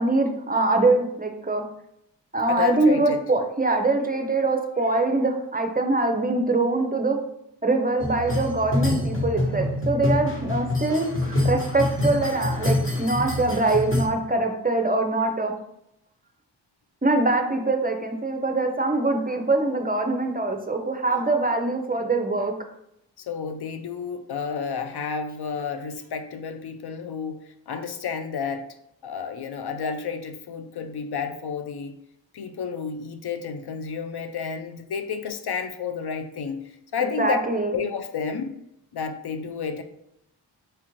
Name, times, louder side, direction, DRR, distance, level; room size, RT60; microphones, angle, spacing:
voice 1, 0.0-1.6 2.3-7.2 7.6-15.5 17.0-22.5 37.0-37.7, right 2 dB, 20° right, 4 dB, 0.5 m, -23 dB
voice 2, 2.5-3.2 23.2-28.7 29.0-32.0 32.3-37.4 37.7-38.6 38.9-39.8, left 6 dB, 60° left, 7 dB, 0.5 m, -31 dB
sound 1, 8.0-14.1, left 1 dB, 25° left, 1.1 m, -26 dB
4.4 x 2.4 x 3.0 m, 0.78 s
cardioid pair, 40°, 45 cm